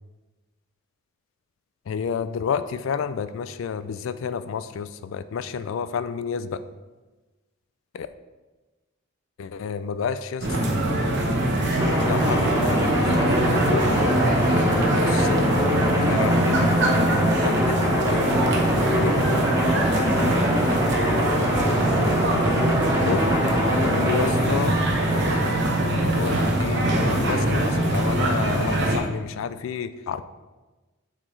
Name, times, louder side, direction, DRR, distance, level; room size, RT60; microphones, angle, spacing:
voice 1, 1.9-6.6 7.9-8.1 9.4-10.6 12.1-12.5 13.5-13.9 15.1-15.4 16.0-16.8 17.4-17.8 18.1-18.5 19.0-19.3 23.1-23.5 23.8-24.7 25.1-25.5 25.9-30.2, left 6 dB, 65° left, 12 dB, 0.3 m, -30 dB
sound 1, 10.4-29.0, right 1 dB, 55° right, 0.9 m, -23 dB
sound 2, 11.8-25.5, equal, 15° right, 1.1 m, -25 dB
7.3 x 4.4 x 3.2 m, 1.2 s
head